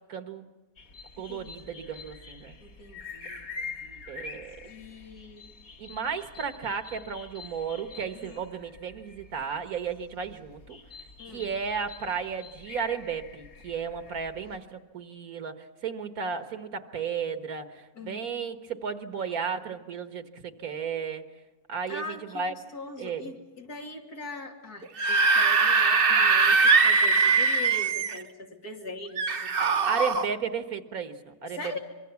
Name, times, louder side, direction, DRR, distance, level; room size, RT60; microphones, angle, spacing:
voice 1, 0.1-0.5 1.2-2.6 4.1-4.7 5.8-10.8 11.3-21.3 21.7-22.5 23.0-23.3 29.8-31.7, right 6 dB, 65° right, 8 dB, 1.8 m, -34 dB
sound 1, 0.8-14.6, left 4 dB, 65° left, 2.6 m, -46 dB
voice 2, 1.2-1.8 2.6-4.0 4.6-5.5 8.2-8.4 11.2-11.5 17.9-18.3 21.9-29.9 30.3-30.4 31.5-31.8, left 2 dB, 85° left, 2 dB, 3.1 m, -42 dB
Screaming / Screech, 24.8-28.2 29.2-30.3, right 4 dB, 40° right, 1.0 m, -22 dB
25.0 x 23.0 x 7.1 m, 1.2 s
omnidirectional pair, 1.6 m